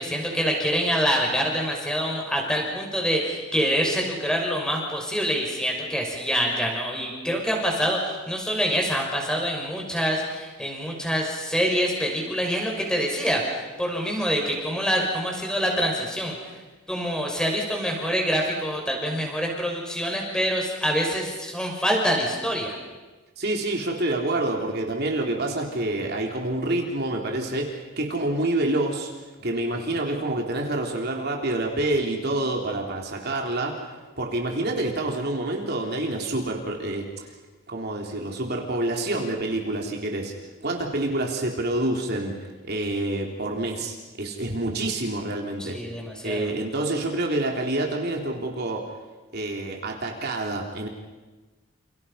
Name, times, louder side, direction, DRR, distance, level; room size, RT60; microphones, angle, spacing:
voice 1, 0.0-16.3 16.9-22.8 45.6-46.5, equal, 5° left, 0 dB, 6.2 m, -26 dB
voice 2, 23.4-29.1 29.4-33.8 34.2-37.3 37.7-40.3 40.6-42.3 42.6-45.8 46.2-48.8 49.3-50.9, right 2 dB, 50° right, 1 dB, 3.6 m, -27 dB
29.5 x 29.5 x 5.8 m, 1.2 s
head